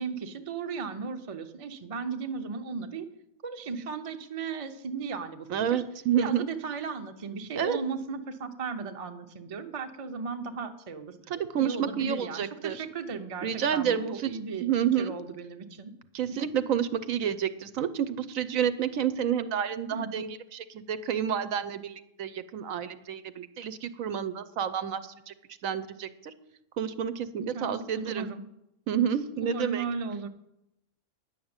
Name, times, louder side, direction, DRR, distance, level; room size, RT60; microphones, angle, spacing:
voice 1, 0.0-3.1 3.4-5.8 6.2-11.2 11.6-14.7 15.0-15.9 16.3-16.4 19.9-20.3 27.4-28.4 29.0-29.2 29.4-30.3, right 4 dB, 30° right, 6 dB, 0.7 m, -36 dB
voice 2, 5.5-6.5 7.5-7.8 11.3-12.8 13.4-14.3 14.6-15.1 16.1-25.3 25.6-26.3 26.8-28.3 28.9-29.8, right 9 dB, 70° right, 13 dB, 1.1 m, -29 dB
10.5 x 6.4 x 8.8 m, 0.84 s
omnidirectional pair, 1.5 m